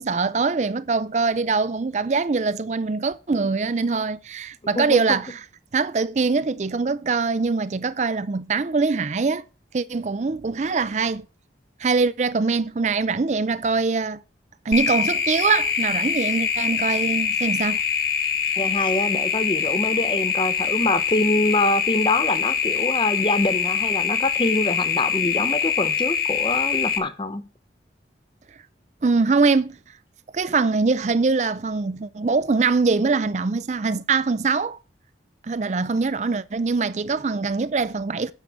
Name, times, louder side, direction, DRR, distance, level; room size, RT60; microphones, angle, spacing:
voice 1, 0.0-5.3 5.7-9.4 9.7-11.3 11.8-14.2 14.7-17.8 29.0-29.8 30.3-34.8 35.5-38.3, right 4 dB, 40° right, 0.4 m, -23 dB
voice 2, 4.7-5.2 18.6-27.5, left 2 dB, 25° left, 0.7 m, -25 dB
sound 1, 14.7-27.0, left 7 dB, 55° left, 1.5 m, -24 dB
9.2 x 6.6 x 6.2 m
head